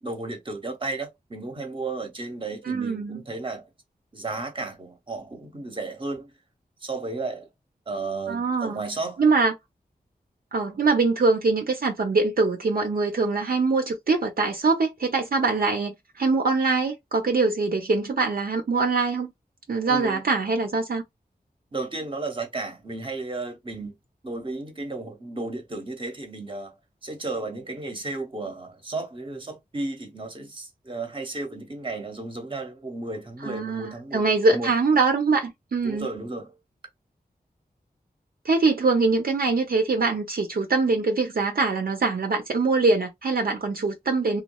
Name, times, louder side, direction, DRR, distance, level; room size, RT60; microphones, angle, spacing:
voice 1, 0.0-3.7 4.1-6.3 6.8-7.5 7.9-9.2 19.8-20.2 21.7-24.0 24.2-34.7 35.8-36.6, right 3 dB, 30° right, 0.8 m, -33 dB
voice 2, 2.6-3.2 8.3-8.8 9.2-9.5 10.5-19.3 19.7-21.0 33.4-36.1 38.4-44.4, right 3 dB, 65° right, 0.6 m, -23 dB
3.0 x 2.3 x 2.2 m
wide cardioid pair, 85°, 17 cm